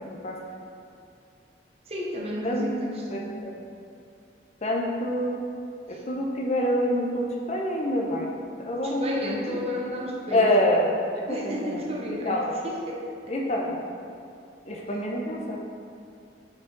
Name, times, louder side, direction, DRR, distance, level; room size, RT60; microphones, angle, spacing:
voice 1, 0.1-0.4 2.4-2.7 3.1-3.5 4.6-5.4 5.9-8.4 8.7-9.2 9.5-9.6 10.3-11.0 11.3-11.7 12.2-12.6 13.3-13.8 14.7-15.6, left 1 dB, 35° left, -1 dB, 0.6 m, -26 dB
voice 2, 1.9-3.3 5.9-6.0 8.8-10.5 11.3-13.3 14.7-14.8, equal, 35° right, -2 dB, 0.7 m, -33 dB
5.5 x 4.7 x 3.8 m, 2.5 s
head